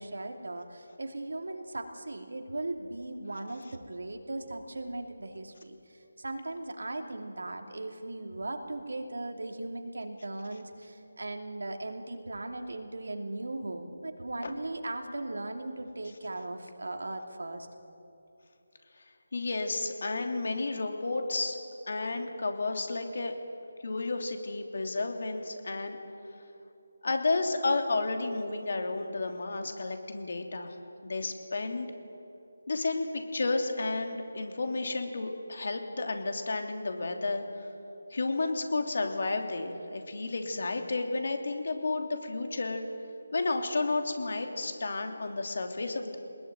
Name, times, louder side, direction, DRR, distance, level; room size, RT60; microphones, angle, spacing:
voice 1, 0.0-17.7, right 2 dB, 75° right, 4 dB, 2.8 m, -38 dB
voice 2, 19.3-21.6 21.9-23.3 23.8-26.0 27.0-30.7 31.0-31.9 32.7-37.4 38.1-42.9 43.3-46.2, left 3 dB, 60° left, 4 dB, 3.0 m, -31 dB
24.0 x 20.5 x 9.2 m, 2.8 s
figure-of-eight pair, 160°, 0 cm